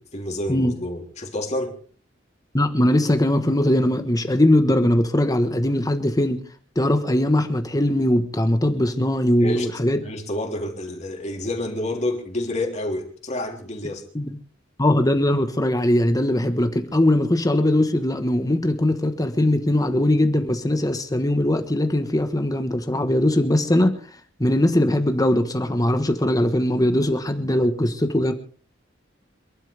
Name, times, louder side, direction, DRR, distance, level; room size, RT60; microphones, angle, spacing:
voice 1, 0.1-1.8 9.4-9.7 10.0-14.0, left 1 dB, 40° left, 2 dB, 3.4 m, -29 dB
voice 2, 2.5-6.4 6.8-10.0 14.1-14.3 14.8-24.0 24.4-28.3, left 1 dB, 20° left, 7 dB, 1.3 m, -20 dB
27.5 x 12.0 x 3.5 m, 0.43 s
head